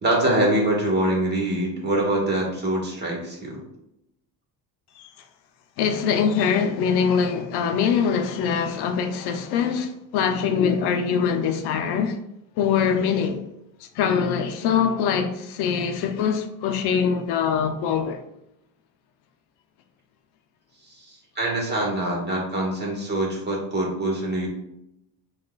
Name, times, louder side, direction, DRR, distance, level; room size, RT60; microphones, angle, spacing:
voice 1, 0.0-3.6 21.0-24.5, right 1 dB, 25° right, 1.2 m, -24 dB
voice 2, 5.8-12.2 12.6-13.4 14.0-18.2, left 7 dB, 70° left, 0.6 m, -23 dB
6.2 x 2.4 x 2.3 m
cardioid pair, 135°, 42 cm